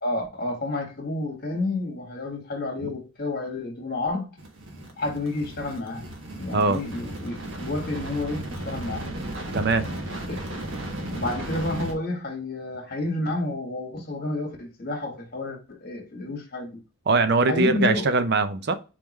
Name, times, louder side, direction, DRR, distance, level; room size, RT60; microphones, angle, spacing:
voice 1, 0.0-4.4 5.0-6.0 6.4-9.1 10.3-10.4 11.1-16.8 17.5-18.1, left 2 dB, 45° left, 1.6 m, -30 dB
sound 1, 4.4-11.9, right 1 dB, 65° right, 1.4 m, -35 dB
voice 2, 9.5-9.9 17.1-18.7, right 3 dB, 50° right, 0.5 m, -21 dB
4.6 x 3.6 x 3.0 m
head